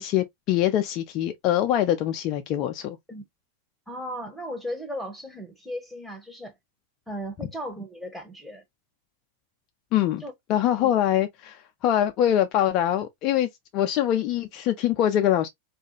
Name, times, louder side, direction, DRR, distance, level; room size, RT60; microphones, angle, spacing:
voice 1, 0.0-3.0 9.9-10.2 10.5-15.5, left 11 dB, 40° left, 0.3 m, -24 dB
voice 2, 3.9-6.5 7.1-8.6 10.2-10.3 10.8-10.9, equal, ahead, 0.8 m, -36 dB
2.4 x 2.2 x 2.7 m
figure-of-eight pair, 90°, 0 cm